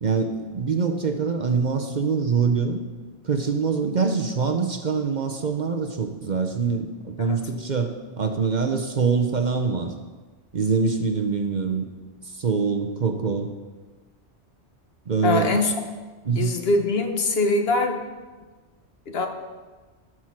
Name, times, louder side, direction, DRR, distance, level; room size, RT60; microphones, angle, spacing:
voice 1, 0.0-2.8 3.2-9.9 10.5-11.9 12.2-13.5 15.1-15.5 16.3-16.5, right 5 dB, 45° right, 5 dB, 0.8 m, -24 dB
voice 2, 15.2-15.7 16.4-18.0 19.1-19.3, left 3 dB, 60° left, 5 dB, 1.2 m, -22 dB
12.5 x 6.1 x 5.9 m, 1.3 s
omnidirectional pair, 1.2 m